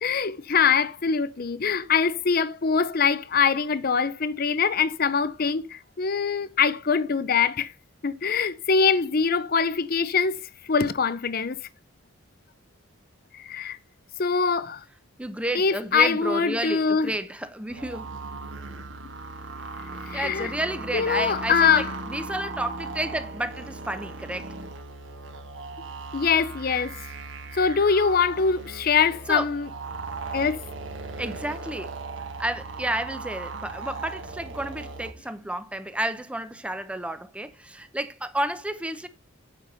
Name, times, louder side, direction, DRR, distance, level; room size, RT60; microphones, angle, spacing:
voice 1, 0.0-7.7 8.0-10.4 10.7-11.6 13.4-13.8 14.2-14.8 15.5-17.1 20.1-20.5 20.9-21.9 26.1-26.9 27.5-29.7 30.3-30.6, left 5 dB, 45° left, 0.6 m, -23 dB
voice 2, 15.2-18.1 20.1-24.6 29.3-29.5 31.2-32.0 32.4-39.1, right 1 dB, 5° right, 0.7 m, -31 dB
sound 1, 17.7-35.1, right 3 dB, 60° right, 1.4 m, -37 dB
9.0 x 5.9 x 5.3 m
head